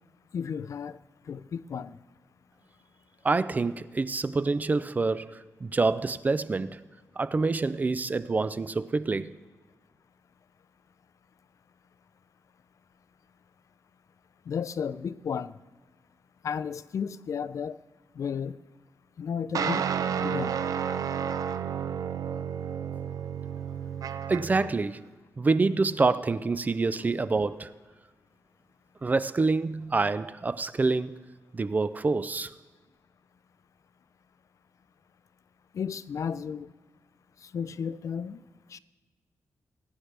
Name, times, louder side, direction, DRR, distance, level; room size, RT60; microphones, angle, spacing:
voice 1, 0.3-1.0 1.3-2.0 14.5-15.5 16.4-17.8 18.2-18.6 19.2-19.9 20.2-20.6 35.7-36.7 37.4-38.4 38.7-38.8, left 7 dB, 65° left, 0.4 m, -33 dB
voice 2, 3.2-6.8 7.2-9.3 24.3-25.0 25.4-27.7 29.0-31.2 31.5-32.5, right 3 dB, 30° right, 0.4 m, -27 dB
sound 1, 19.5-24.7, right 8 dB, 80° right, 0.6 m, -31 dB
21.0 x 9.6 x 3.4 m
wide cardioid pair, 125°, 6 cm